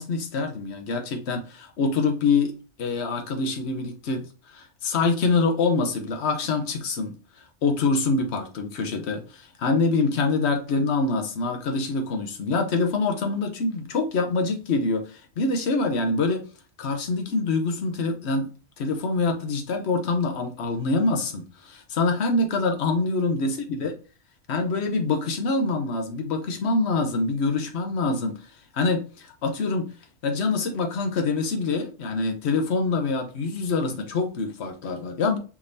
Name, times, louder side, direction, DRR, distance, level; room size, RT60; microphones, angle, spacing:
voice 1, 0.0-2.5 2.8-4.2 4.5-7.1 7.6-16.4 16.8-18.5 18.8-23.9 24.5-28.4 28.7-29.9 30.2-35.4, left 3 dB, 65° left, 1.1 m, -25 dB
5.0 x 3.5 x 2.6 m
omnidirectional pair, 1.2 m